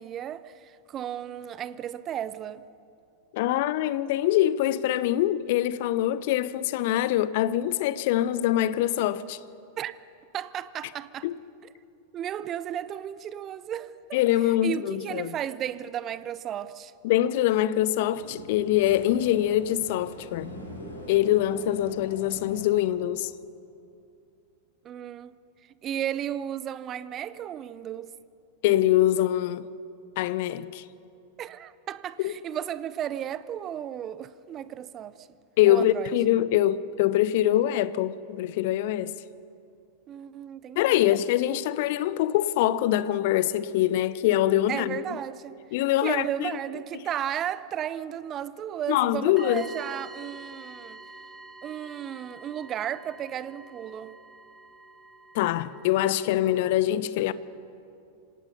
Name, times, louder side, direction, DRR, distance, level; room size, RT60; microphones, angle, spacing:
voice 1, 0.0-2.6 9.8-10.0 10.3-11.3 12.1-13.9 14.6-16.9 24.8-25.3 25.8-28.1 31.4-35.3 35.7-36.1 40.1-41.1 44.7-45.6 46.0-51.0 51.6-54.1, right 10 dB, 30° right, 0.7 m, -34 dB
voice 2, 3.3-9.4 11.2-11.4 14.1-15.3 17.0-20.6 21.1-23.3 28.6-29.7 30.2-30.8 32.2-32.4 35.6-39.1 40.8-45.0 45.7-46.5 48.9-49.6 55.3-57.3, left 13 dB, 50° left, 0.6 m, -24 dB
sound 1, 17.7-22.8, equal, 80° left, 4.3 m, -44 dB
sound 2, 49.4-56.8, right 3 dB, 10° right, 2.0 m, -48 dB
26.0 x 18.0 x 5.6 m
figure-of-eight pair, 90°, 0 cm